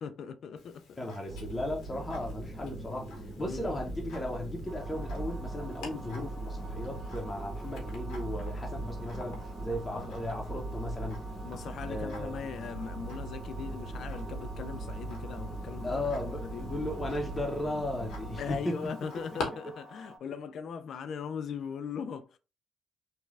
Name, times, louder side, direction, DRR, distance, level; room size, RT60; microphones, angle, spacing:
voice 1, 0.0-1.0 3.4-3.8 9.9-10.1 11.4-16.6 18.4-22.4, left 6 dB, 65° left, 0.3 m, -40 dB
Tick-tock, 0.6-19.4, left 3 dB, 85° left, 0.9 m, -49 dB
voice 2, 1.0-11.2 11.8-12.4 15.8-18.9, left 1 dB, 20° left, 0.7 m, -36 dB
sound 1, 1.3-18.6, right 2 dB, 40° right, 1.4 m, -40 dB
sound 2, 4.7-20.2, right 1 dB, 60° right, 1.0 m, -50 dB
3.1 x 2.2 x 2.4 m
cardioid pair, 90°, 0 cm